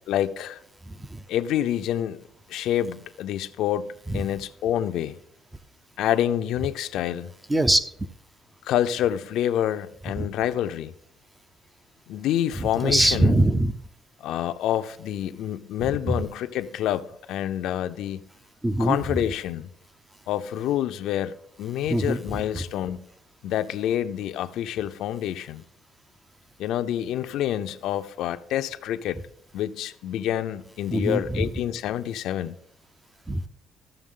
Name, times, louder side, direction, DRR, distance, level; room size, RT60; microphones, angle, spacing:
voice 1, 0.1-0.6 1.3-2.2 2.5-5.2 6.0-7.3 8.6-10.9 12.1-13.4 14.2-18.2 18.8-19.7 20.3-23.0 23.4-25.6 26.6-29.2 29.5-32.6, left 11 dB, 75° left, 0.5 m, -27 dB
voice 2, 0.9-1.2 4.1-4.2 7.5-7.9 10.2-10.3 12.6-13.7 16.1-16.2 18.6-19.0 21.9-22.6 30.9-31.5 33.3-33.4, right 1 dB, 10° right, 0.5 m, -23 dB
13.5 x 7.0 x 3.7 m
cardioid pair, 140°, 0 cm